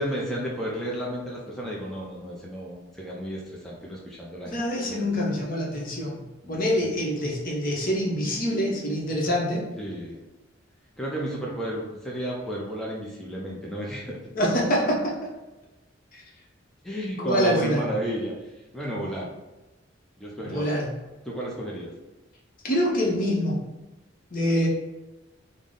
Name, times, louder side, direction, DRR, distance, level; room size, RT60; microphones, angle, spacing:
voice 1, 0.0-4.6 4.9-5.2 6.4-6.6 9.8-10.2 11.0-14.2 16.8-18.3 18.7-19.3 20.2-20.8 21.2-21.9, right 1 dB, ahead, -5 dB, 0.4 m, -32 dB
voice 2, 4.5-6.2 6.5-9.6 14.3-15.0 16.1-16.2 17.2-17.8 20.4-20.9 22.6-23.6 24.3-24.7, equal, 45° left, -2 dB, 0.8 m, -25 dB
3.6 x 2.0 x 3.6 m, 1.1 s
head